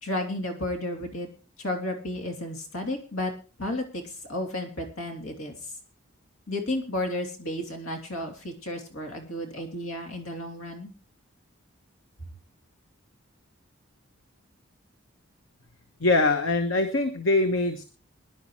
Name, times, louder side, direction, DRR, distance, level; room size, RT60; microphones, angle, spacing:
voice 1, 0.0-1.3 1.6-3.3 3.6-5.5 6.5-10.9, left 1 dB, 90° left, 4 dB, 3.2 m, -32 dB
voice 2, 16.0-17.8, left 2 dB, 65° left, 7 dB, 1.1 m, -23 dB
22.0 x 11.0 x 3.2 m, 0.36 s
head